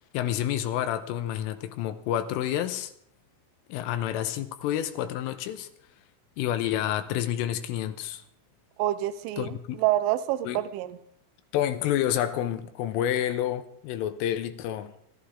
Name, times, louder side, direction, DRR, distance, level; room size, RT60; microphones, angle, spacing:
voice 1, 0.1-2.9 3.7-5.7 6.4-8.2 9.4-9.8 10.4-10.6 11.5-14.9, left 11 dB, 80° left, 9 dB, 3.4 m, -29 dB
voice 2, 8.8-11.0, right 14 dB, 80° right, 13 dB, 3.1 m, -27 dB
26.5 x 13.0 x 3.7 m, 0.67 s
omnidirectional pair, 6.0 m